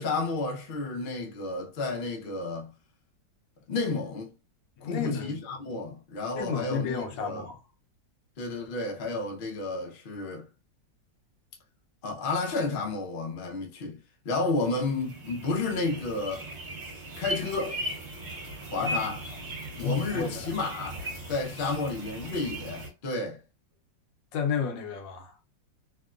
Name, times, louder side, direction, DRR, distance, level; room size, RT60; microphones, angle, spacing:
voice 1, 0.0-2.7 3.7-4.3 4.8-7.5 8.4-10.5 12.0-16.5 17.2-17.8 18.7-19.2 19.8-21.0 21.3-23.4, left 3 dB, 55° left, 0.6 m, -31 dB
voice 2, 4.8-5.4 6.3-7.6 18.8-19.1 19.8-20.5 21.6-21.8 24.3-25.3, left 6 dB, 80° left, 1.4 m, -32 dB
sound 1, 14.5-22.9, right 1 dB, 40° right, 1.3 m, -38 dB
3.4 x 2.2 x 2.4 m
omnidirectional pair, 2.0 m